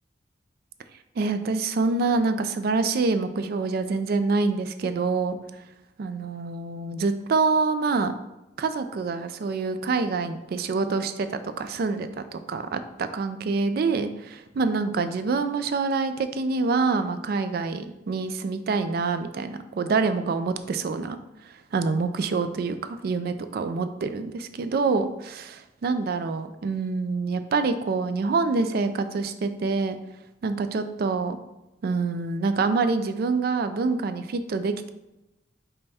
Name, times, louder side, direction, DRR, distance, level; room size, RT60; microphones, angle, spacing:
voice 1, 1.2-5.4 6.0-8.1 8.6-21.2 21.7-30.0 30.4-31.4 31.8-34.9, right 4 dB, 55° right, 10 dB, 0.3 m, -26 dB
5.3 x 2.2 x 4.1 m, 0.94 s
head